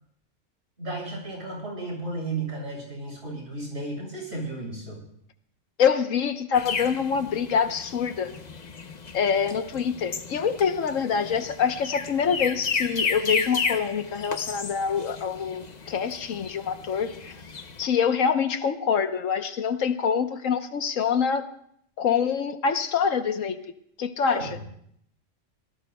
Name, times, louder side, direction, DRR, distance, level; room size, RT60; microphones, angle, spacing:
voice 1, 0.8-5.0 24.3-24.8, right 2 dB, 55° right, -3 dB, 7.3 m, -34 dB
voice 2, 5.8-8.3 9.1-17.1 17.8-21.5 22.0-23.6 24.0-24.4, left 7 dB, 80° left, 8 dB, 1.3 m, -25 dB
sound 1, 6.5-17.8, left 5 dB, 40° left, 0.8 m, -33 dB
26.0 x 17.5 x 2.3 m, 0.68 s
omnidirectional pair, 1.3 m